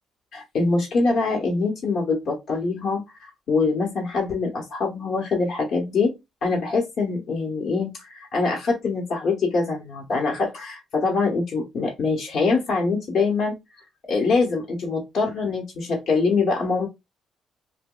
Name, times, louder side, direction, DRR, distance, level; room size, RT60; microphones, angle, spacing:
voice 1, 0.3-6.1 6.4-13.5 14.1-16.9, left 4 dB, 65° left, 0 dB, 1.0 m, -24 dB
3.0 x 2.2 x 3.8 m, 0.21 s
cardioid pair, 90°, 0 cm